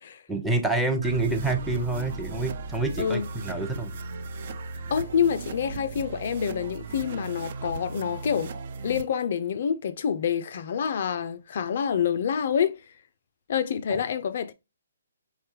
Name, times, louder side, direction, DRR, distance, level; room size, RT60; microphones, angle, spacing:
voice 1, 0.3-3.9, right 3 dB, ahead, 0.6 m, -27 dB
sound 1, 1.0-9.0, right 4 dB, 50° right, 0.4 m, -37 dB
voice 2, 4.9-8.5 8.8-12.8 13.5-14.5, left 7 dB, 55° left, 0.3 m, -27 dB
4.5 x 2.2 x 2.9 m
figure-of-eight pair, 140°, 0 cm